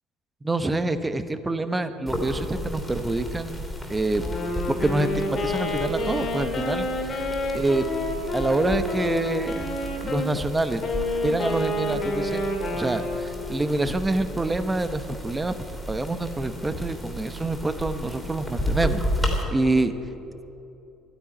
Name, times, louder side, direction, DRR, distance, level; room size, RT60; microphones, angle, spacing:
voice 1, 0.4-3.6 3.9-4.3 4.7-7.9 8.3-9.7 10.0-10.8 11.2-15.5 15.9-19.0 19.5-19.9, right 2 dB, 15° right, 11 dB, 0.9 m, -26 dB
sound 1, 2.1-19.4, equal, 5° left, 3.0 m, -33 dB
Wind instrument woodwind instrument, 4.1-10.3 10.8-13.4, left 2 dB, 40° left, 2.3 m, -29 dB
12.0 x 10.0 x 9.9 m, 2.9 s
cardioid pair, 115°, 0 cm